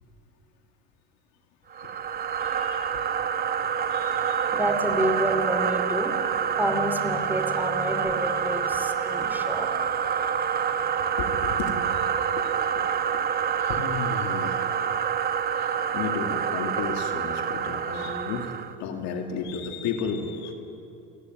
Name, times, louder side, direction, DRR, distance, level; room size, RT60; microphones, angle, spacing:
sound 1, 1.7-18.8, right 7 dB, 30° right, 1.1 m, -27 dB
voice 1, 2.2-3.1 3.9-4.5 11.2-12.9 13.1-13.2 13.6-14.7 15.4-20.5, left 5 dB, 60° left, 4 dB, 2.3 m, -34 dB
voice 2, 4.5-6.1 6.6-9.7, equal, 5° right, 5 dB, 3.0 m, -28 dB
29.5 x 10.5 x 9.4 m, 2.7 s
hypercardioid pair, 85°, 30 cm